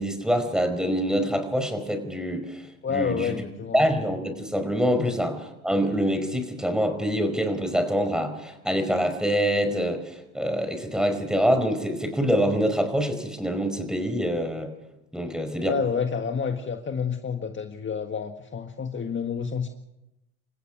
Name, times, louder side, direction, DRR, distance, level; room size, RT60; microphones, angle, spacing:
voice 1, 0.0-2.6 2.9-3.4 3.7-5.4 5.6-14.7 15.1-15.7, equal, ahead, 8 dB, 4.9 m, -25 dB
voice 2, 2.8-3.8 5.0-5.1 15.6-19.7, left 6 dB, 30° left, 5 dB, 1.7 m, -29 dB
28.5 x 16.0 x 6.1 m, 0.93 s
hypercardioid pair, 75°, 38 cm